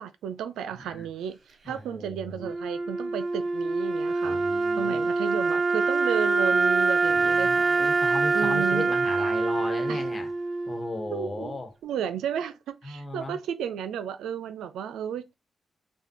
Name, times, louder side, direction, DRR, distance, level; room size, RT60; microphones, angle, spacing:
voice 1, 0.0-1.4 1.7-4.4 4.8-7.8 8.3-8.9 9.9-10.0 11.1-15.3, right 8 dB, 90° right, 0.4 m, -33 dB
voice 2, 0.7-1.1 1.6-2.5 4.2-5.1 7.1-10.3 10.6-11.7 12.8-13.4, left 2 dB, 35° left, 1.2 m, -36 dB
Wind instrument woodwind instrument, 2.4-11.5, right 3 dB, 55° right, 0.9 m, -25 dB
5.7 x 2.3 x 2.8 m
supercardioid pair, 50°, 0 cm